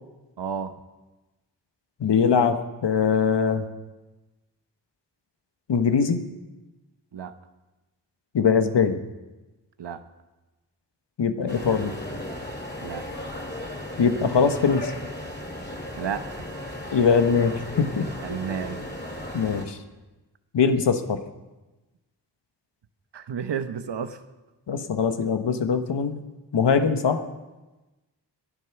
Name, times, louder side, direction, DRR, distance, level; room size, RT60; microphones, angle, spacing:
voice 1, 0.4-0.8 7.1-7.3 9.8-10.0 12.8-13.1 16.0-16.5 18.2-18.9 23.1-24.2, right 7 dB, 80° right, 10 dB, 1.1 m, -32 dB
voice 2, 2.0-3.7 5.7-6.2 8.3-9.0 11.2-11.9 14.0-14.9 16.9-18.1 19.3-19.8 20.5-21.2 24.7-26.2 26.5-27.2, left 6 dB, 80° left, 8 dB, 1.3 m, -22 dB
sound 1, 11.5-19.6, left 1 dB, 25° left, 2.7 m, -35 dB
16.5 x 11.5 x 5.9 m, 1.1 s
cardioid pair, 45°, 42 cm